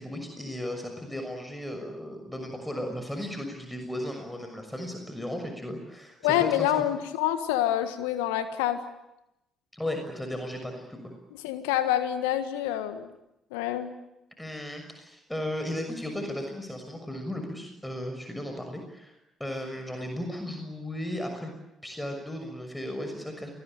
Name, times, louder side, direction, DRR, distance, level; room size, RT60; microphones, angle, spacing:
voice 1, 0.0-6.8 9.7-11.1 14.4-19.1 19.4-21.5 21.8-23.5, left 1 dB, 5° left, 4 dB, 6.3 m, -35 dB
voice 2, 6.2-8.8 11.4-13.1 13.5-13.9, left 11 dB, 75° left, 11 dB, 1.6 m, -27 dB
28.5 x 20.5 x 9.1 m, 0.88 s
figure-of-eight pair, 45°, 0 cm